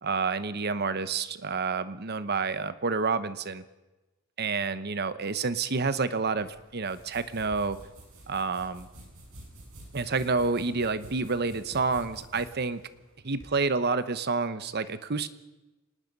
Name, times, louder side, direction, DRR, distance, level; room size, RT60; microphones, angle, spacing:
voice 1, 0.0-3.6 4.4-7.8 8.3-8.9 9.9-12.8 13.2-15.3, right 4 dB, 50° right, 13 dB, 1.0 m, -29 dB
sound 1, 6.4-13.5, right 1 dB, 85° right, 7.1 m, -49 dB
25.0 x 19.5 x 5.4 m, 1.1 s
head